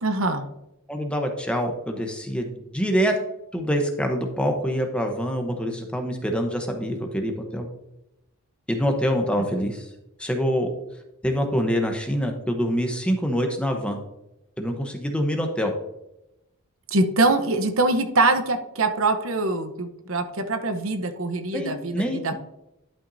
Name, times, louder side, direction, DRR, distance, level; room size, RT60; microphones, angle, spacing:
voice 1, 0.0-0.4 16.9-22.3, right 2 dB, 60° right, 8 dB, 0.9 m, -23 dB
voice 2, 0.9-3.1 3.5-7.7 8.7-9.9 10.2-10.7 11.2-14.0 14.6-15.7 21.5-22.3, equal, 5° left, 3 dB, 0.9 m, -25 dB
11.5 x 6.1 x 2.7 m, 0.88 s
head